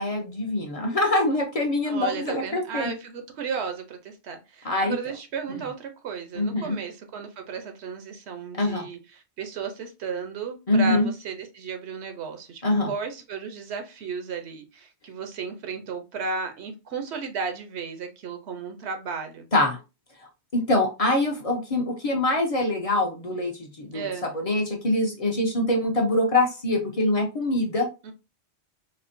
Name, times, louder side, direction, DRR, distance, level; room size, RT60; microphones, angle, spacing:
voice 1, 0.0-2.9 4.6-5.0 5.5-5.6 6.4-6.8 8.5-8.9 10.7-11.1 12.6-12.9 19.5-19.8 20.5-27.9, left 1 dB, 40° left, 1 dB, 0.7 m, -24 dB
voice 2, 1.9-12.6 12.9-19.5 23.9-24.3 28.0-28.1, right 5 dB, 80° right, 7 dB, 1.0 m, -34 dB
4.2 x 2.1 x 2.6 m, 0.28 s
omnidirectional pair, 1.1 m